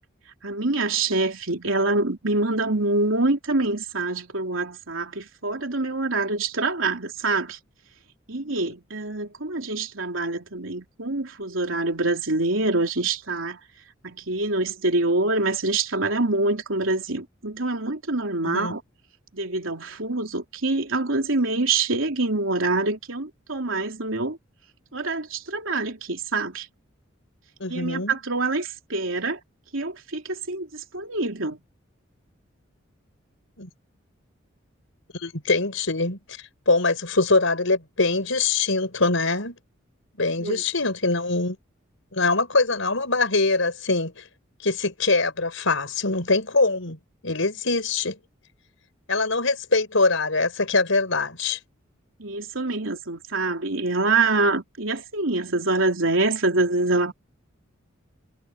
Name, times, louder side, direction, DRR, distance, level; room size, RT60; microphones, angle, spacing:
voice 1, 0.4-7.6 8.3-13.6 14.0-18.8 19.3-24.4 24.9-26.7 27.7-29.4 29.7-31.6 40.4-40.6 52.2-57.1, right 2 dB, 80° right, 3.3 m, -25 dB
voice 2, 18.4-18.8 27.6-28.2 33.6-33.7 35.1-39.6 40.2-41.6 42.1-44.2 44.6-48.2 49.1-51.6, left 3 dB, 75° left, 5.2 m, -23 dB
head